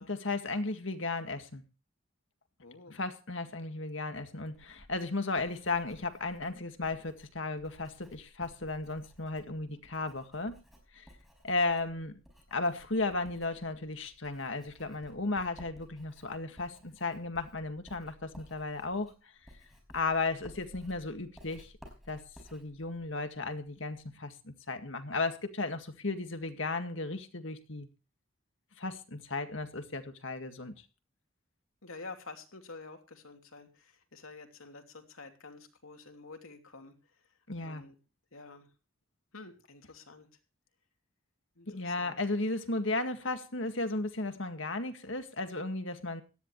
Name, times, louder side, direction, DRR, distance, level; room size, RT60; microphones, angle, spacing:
voice 1, 0.1-1.6 2.9-10.6 10.9-11.1 11.4-12.2 12.5-19.1 19.9-21.7 22.1-22.2 22.5-27.9 28.8-30.7 37.5-37.8 41.7-46.2, left 3 dB, 65° left, 7 dB, 2.0 m, -35 dB
voice 2, 2.6-2.9 31.8-36.9 37.6-38.0 38.3-38.7 39.3-40.3 41.6-42.2, left 3 dB, 90° left, 5 dB, 3.0 m, -49 dB
Writing, 4.5-24.1, equal, ahead, 5.1 m, -57 dB
17.5 x 13.5 x 3.2 m, 0.33 s
head